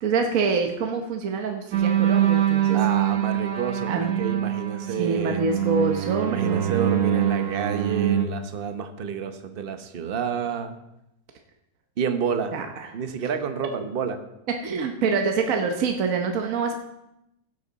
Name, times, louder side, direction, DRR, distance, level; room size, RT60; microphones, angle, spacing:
voice 1, 0.0-2.8 3.9-4.2 4.9-6.7 12.5-12.9 14.5-16.7, right 4 dB, 60° right, 4 dB, 1.3 m, -26 dB
sound 1, 1.7-8.3, right 11 dB, 85° right, 1.8 m, -24 dB
voice 2, 2.7-5.4 6.2-10.7 12.0-12.5 12.9-14.2, right 6 dB, 40° right, 8 dB, 1.0 m, -29 dB
15.5 x 8.4 x 4.0 m, 0.86 s
omnidirectional pair, 1.7 m